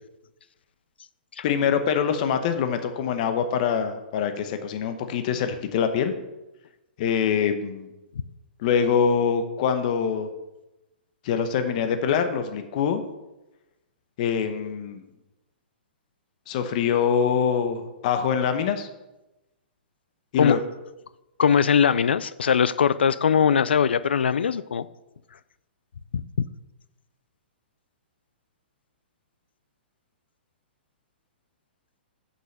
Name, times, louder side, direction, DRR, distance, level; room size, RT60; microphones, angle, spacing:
voice 1, 1.4-6.1 7.0-7.9 8.6-10.3 11.2-13.0 14.2-15.0 16.5-18.9 20.3-20.6, left 7 dB, 45° left, 8 dB, 0.9 m, -24 dB
voice 2, 21.4-24.9 26.1-26.2, left 7 dB, 90° left, 16 dB, 0.4 m, -21 dB
6.3 x 5.4 x 6.6 m, 0.98 s
hypercardioid pair, 140°, 6 cm